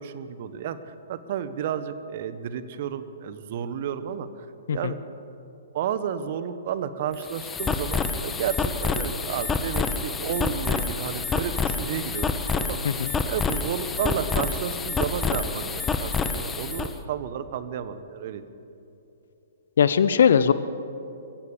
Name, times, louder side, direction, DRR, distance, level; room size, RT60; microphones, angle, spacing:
voice 1, 0.0-4.4 4.7-5.0 5.7-12.3 12.6-18.4, right 8 dB, 45° right, 12 dB, 1.3 m, -32 dB
sound 1, 7.1-16.9, left 4 dB, 15° left, 1.3 m, -28 dB
voice 2, 19.8-20.5, left 7 dB, 60° left, 14 dB, 0.8 m, -19 dB
23.0 x 16.5 x 7.1 m, 2.9 s
figure-of-eight pair, 120°, 0 cm